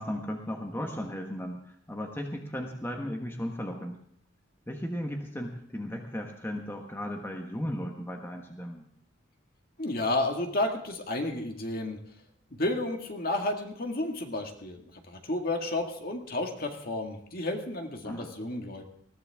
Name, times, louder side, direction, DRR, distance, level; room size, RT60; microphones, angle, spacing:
voice 1, 0.0-4.0 4.7-8.9 18.0-18.3, equal, 10° left, 2 dB, 1.3 m, -36 dB
voice 2, 9.8-12.0 12.6-14.8 15.1-18.9, left 2 dB, 50° left, 3 dB, 2.0 m, -31 dB
20.5 x 15.0 x 3.6 m, 0.62 s
head